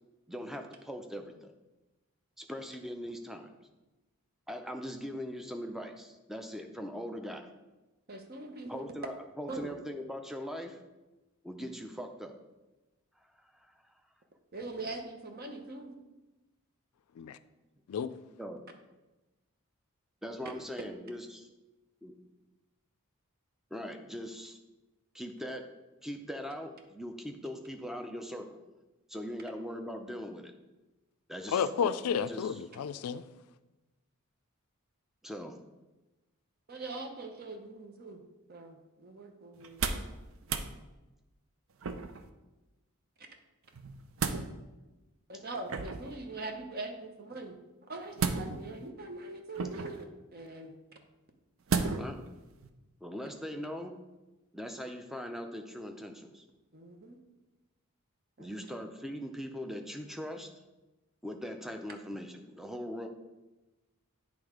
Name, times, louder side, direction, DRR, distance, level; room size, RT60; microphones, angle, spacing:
voice 1, 0.3-1.5 2.4-3.5 4.5-7.5 8.7-10.8 11.4-12.3 13.4-13.7 18.4-18.6 20.2-21.5 22.0-22.1 23.7-24.6 25.1-25.6 26.0-28.6 29.1-30.5 31.3-32.0 32.3-32.5 35.2-35.6 52.0-52.2 53.0-54.0 54.5-56.4 58.4-60.5 61.2-63.1, equal, ahead, 5 dB, 0.5 m, -40 dB
voice 2, 8.1-8.9 9.5-9.7 14.5-15.9 36.7-38.2 38.5-39.8 45.3-50.7 56.7-57.2 58.4-58.5, right 2 dB, 45° right, 4 dB, 0.8 m, -42 dB
voice 3, 31.5-33.2, left 7 dB, 85° left, 13 dB, 0.4 m, -31 dB
sound 1, 39.6-40.1 40.4-40.7 41.8-42.3 43.7-44.5 45.7-46.2 48.2-48.8 49.6-50.0 51.7-52.2 52.6-52.7, right 5 dB, 65° right, 0.5 m, -33 dB
8.6 x 3.5 x 5.0 m, 1.1 s
head